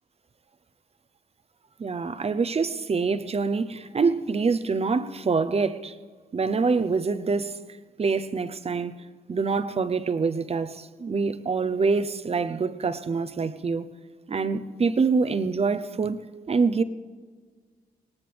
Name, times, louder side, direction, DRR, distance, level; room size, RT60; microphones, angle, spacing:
voice 1, 1.8-6.0 6.3-7.6 8.0-8.9 9.3-13.9 14.3-16.2 16.5-16.8, right 4 dB, 40° right, 0.8 m, -25 dB
18.5 x 18.5 x 3.5 m
cardioid pair, 65°, 16 cm